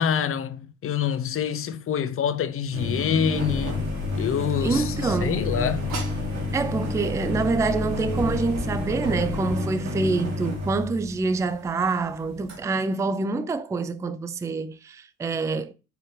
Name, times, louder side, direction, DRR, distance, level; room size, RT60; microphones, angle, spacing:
voice 1, 0.0-3.8 4.1-5.9, left 8 dB, 45° left, 0.6 m, -26 dB
sound 1, 2.7-12.6, left 2 dB, 60° right, 1.5 m, -30 dB
sound 2, 3.3-9.4, left 6 dB, 30° left, 1.5 m, -35 dB
voice 2, 4.6-5.4 6.5-15.7, right 3 dB, 10° right, 0.3 m, -26 dB
sound 3, 4.7-6.3 7.2-7.3 7.9-9.6, right 2 dB, 90° right, 1.2 m, -38 dB
4.8 x 2.9 x 3.0 m
cardioid pair, 90°, 30 cm